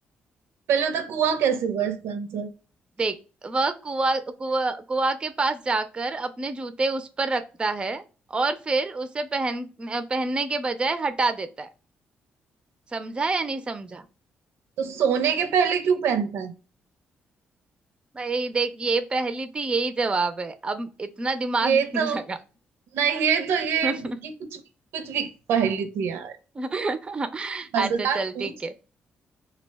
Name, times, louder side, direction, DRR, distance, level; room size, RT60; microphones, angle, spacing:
voice 1, 0.7-2.5 14.8-16.5 21.6-22.2 22.9-24.6 24.9-26.4 27.7-28.5, right 7 dB, 85° right, 0.4 m, -25 dB
voice 2, 3.4-8.0 8.3-11.7 12.9-14.0 18.1-22.4 23.8-24.2 26.6-28.7, right 3 dB, 25° right, 0.4 m, -27 dB
2.4 x 2.1 x 3.3 m
cardioid pair, 95°, 4 cm